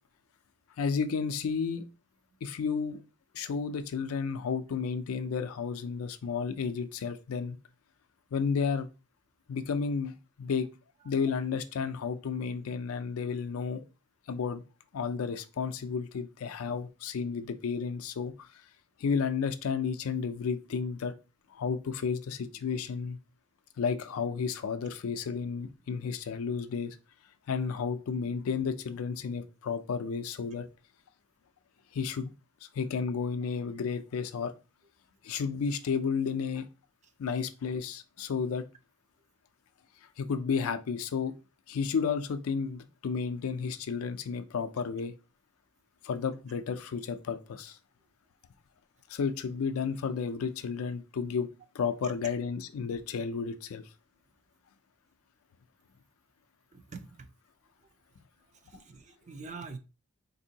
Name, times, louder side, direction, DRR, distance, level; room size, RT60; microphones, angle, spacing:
voice 1, 0.8-1.8 2.4-3.0 3.3-7.6 8.3-8.9 9.5-10.7 11.0-13.8 14.3-14.6 14.9-18.5 19.0-21.1 21.5-23.2 23.8-27.0 27.5-30.7 31.9-32.3 32.6-34.5 35.2-36.6 37.2-38.6 40.2-41.3 41.7-45.1 46.0-47.8 49.1-51.5 51.7-53.8, left 5 dB, 75° left, 0.4 m, -32 dB
voice 2, 56.7-57.3 58.7-59.8, right 4 dB, 35° right, 0.4 m, -44 dB
3.6 x 2.6 x 2.7 m
head